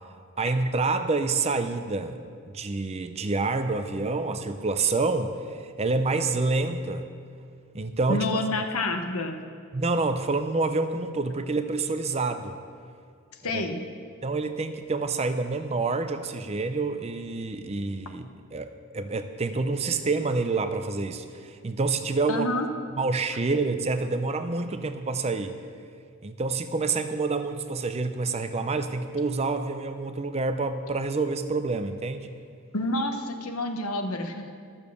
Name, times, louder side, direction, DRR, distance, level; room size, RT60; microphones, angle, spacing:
voice 1, 0.4-2.2 2.5-7.1 7.7-8.4 9.7-12.6 13.5-13.6 14.2-18.7 18.9-22.5 22.9-25.6 26.2-32.3, right 3 dB, 30° right, 9 dB, 0.5 m, -27 dB
voice 2, 8.1-9.4 13.4-13.8 22.3-22.7 32.7-34.6, left 2 dB, 75° left, 5 dB, 1.0 m, -28 dB
12.5 x 7.0 x 6.9 m, 2.2 s
head